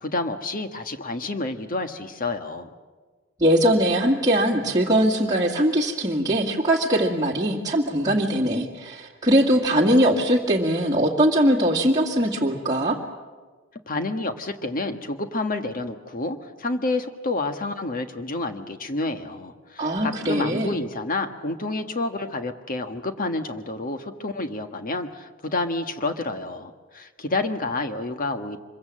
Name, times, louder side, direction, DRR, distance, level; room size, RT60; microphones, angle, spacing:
voice 1, 0.0-2.7 13.9-28.6, left 2 dB, 45° left, 7 dB, 1.5 m, -29 dB
voice 2, 3.4-13.0 19.8-20.7, right 1 dB, 20° right, -3 dB, 2.1 m, -21 dB
25.5 x 23.0 x 7.6 m, 1.4 s
head